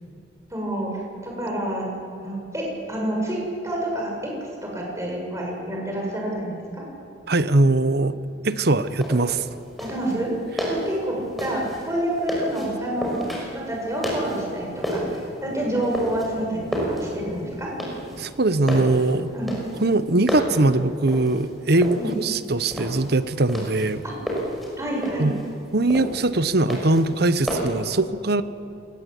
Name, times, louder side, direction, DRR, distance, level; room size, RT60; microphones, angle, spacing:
voice 1, 0.5-1.9 2.2-4.3 4.6-6.8 9.8-10.3 10.7-13.2 13.5-17.7 19.3-19.5 22.0-22.2 24.0-24.1 24.8-25.3, right 1 dB, 15° right, -2 dB, 7.3 m, -28 dB
voice 2, 7.3-8.2 8.4-9.5 18.2-19.3 19.8-24.0 25.2-25.3 25.7-28.4, right 2 dB, 60° right, 13 dB, 1.0 m, -21 dB
sound 1, 8.7-27.9, equal, ahead, 5.9 m, -32 dB
25.5 x 19.5 x 8.4 m, 2.8 s
head